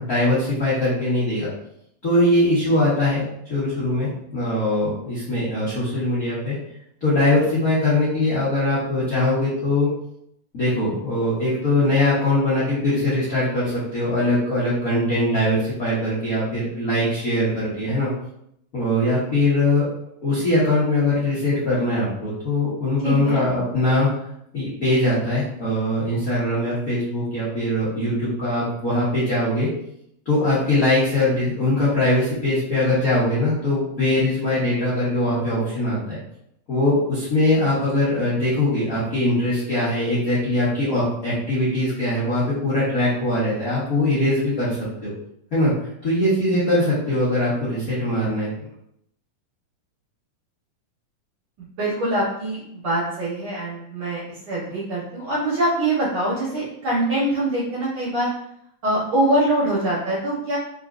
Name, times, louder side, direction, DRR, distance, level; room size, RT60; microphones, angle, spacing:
voice 1, 0.0-1.5 2.0-6.5 7.0-9.9 10.5-18.1 18.7-19.9 20.2-24.1 24.5-29.7 30.2-36.2 36.7-45.1 45.5-45.7 46.0-48.5, left 1 dB, 75° left, -10 dB, 0.8 m, -21 dB
voice 2, 23.0-23.5 51.8-54.2 54.5-58.3 58.8-60.6, right 1 dB, 60° right, -7 dB, 1.5 m, -23 dB
4.2 x 3.9 x 2.5 m, 0.75 s
omnidirectional pair, 3.6 m